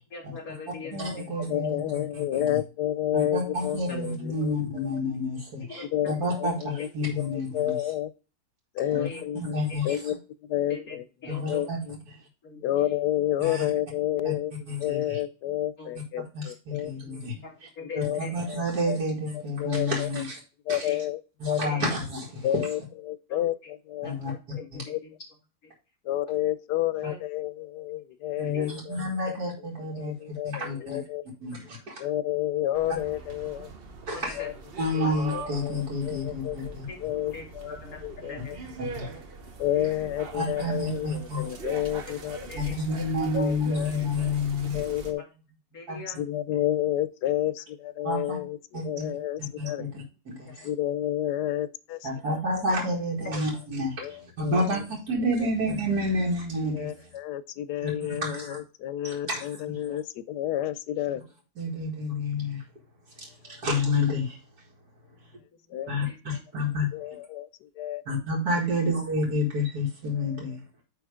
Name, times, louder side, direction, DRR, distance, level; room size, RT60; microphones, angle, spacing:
voice 1, 0.1-1.2 3.9-4.0 5.7-6.1 6.8-6.9 8.8-9.3 9.7-10.0 10.7-11.7 12.4-12.9 15.8-15.9 17.1-17.2 17.4-18.3 20.8-21.0 21.6-21.9 23.3-23.4 24.0-25.1 25.6-25.7 27.0-27.2 28.5-28.7 34.1-34.5 35.0-35.2 36.9-38.7 39.0-39.2 42.0-42.1 42.5-42.8 45.3-45.4 45.7-46.2 50.5-50.7 53.2-53.5 59.9-60.0 65.1-65.2 65.5-66.2 66.5-66.6 68.6-68.8, left 3 dB, 60° left, 3.2 m, -43 dB
voice 2, 0.9-2.6 3.1-7.8 8.9-9.1 9.5-9.9 11.3-11.8 13.4-13.7 14.2-14.3 14.7-15.2 16.3-17.3 18.2-20.4 20.7-20.9 21.4-22.5 24.0-24.3 24.7-24.8 28.4-31.0 31.4-31.8 34.1-34.3 34.8-36.9 38.8-39.1 40.3-41.5 42.6-44.8 45.9-46.0 48.0-48.4 48.7-49.1 49.6-50.6 52.0-56.9 57.8-58.6 59.0-59.5 61.6-62.6 63.2-64.4 65.9-66.9 68.1-70.6, left 1 dB, 75° right, 2.4 m, -29 dB
voice 3, 1.5-4.8 5.9-6.1 6.4-6.9 7.3-8.1 8.7-9.6 9.8-10.2 10.4-11.0 11.5-12.0 12.6-14.5 14.8-16.9 17.9-18.2 18.5-19.0 19.3-20.1 20.7-21.2 21.5-21.7 22.4-23.5 23.9-24.1 24.9-25.0 26.0-29.0 29.9-31.2 32.0-33.7 34.4-34.5 34.9-37.8 38.0-38.6 39.6-42.4 43.3-44.3 44.7-45.2 46.2-49.9 50.6-52.4 54.0-54.6 55.4-55.5 56.6-61.2 65.7-65.9 66.9-68.0 70.3-70.4, left 12 dB, 85° left, 1.2 m, -30 dB
sound 1, 32.7-45.1, right 4 dB, 45° right, 1.0 m, -42 dB
9.4 x 3.5 x 4.8 m
omnidirectional pair, 1.7 m